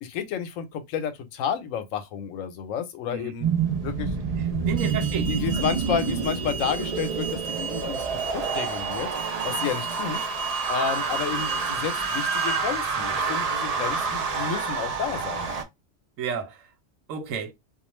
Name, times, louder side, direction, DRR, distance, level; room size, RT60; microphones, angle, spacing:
voice 1, 0.0-3.5 3.8-4.2 4.6-4.7 5.3-10.2 10.7-15.5, left 7 dB, 85° left, 1.0 m, -31 dB
sound 1, 3.4-15.6, right 5 dB, 60° right, 0.4 m, -28 dB
voice 2, 4.4-5.6 16.2-16.7 17.1-17.5, right 6 dB, 80° right, 1.0 m, -32 dB
Alarm, 4.8-12.6, right 5 dB, 20° right, 0.8 m, -36 dB
2.4 x 2.2 x 3.0 m
omnidirectional pair, 1.3 m